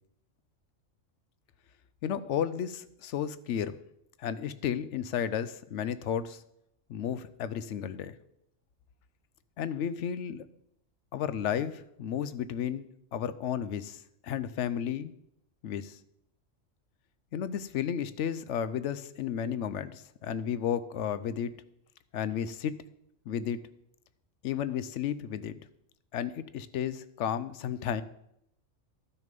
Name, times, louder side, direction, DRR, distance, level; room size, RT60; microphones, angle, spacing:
voice 1, 2.0-3.8 4.2-6.4 6.9-8.1 9.6-10.5 11.1-15.1 15.6-16.0 17.3-21.5 22.1-22.8 23.3-23.6 24.4-25.6 26.1-28.0, left 9 dB, 70° left, 14 dB, 0.9 m, -33 dB
11.5 x 6.5 x 5.2 m, 0.77 s
omnidirectional pair, 1.3 m